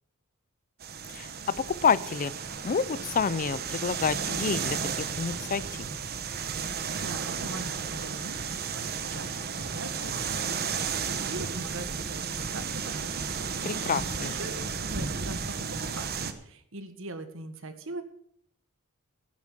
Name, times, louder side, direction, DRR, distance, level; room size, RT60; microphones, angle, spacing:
sound 1, 0.8-16.3, right 6 dB, 45° right, 1.1 m, -33 dB
voice 1, 1.1-2.3 2.6-5.9 13.6-14.4, left 6 dB, 35° left, 19 dB, 0.4 m, -29 dB
voice 2, 6.9-13.1 14.2-18.0, right 2 dB, 60° right, 9 dB, 1.7 m, -42 dB
12.0 x 9.6 x 7.4 m, 0.67 s
head